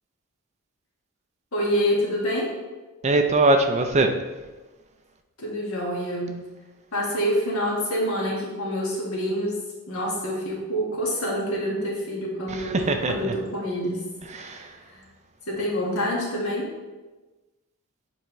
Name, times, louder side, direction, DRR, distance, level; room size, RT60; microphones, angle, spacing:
voice 1, 1.5-2.5 5.4-6.4 6.9-9.6 9.9-14.0 14.3-15.0 15.5-16.7, equal, 70° left, -3 dB, 1.6 m, -27 dB
voice 2, 3.0-4.1 12.7-13.3 14.3-14.7, right 2 dB, 30° right, 5 dB, 0.5 m, -21 dB
7.2 x 4.5 x 3.1 m, 1.2 s
head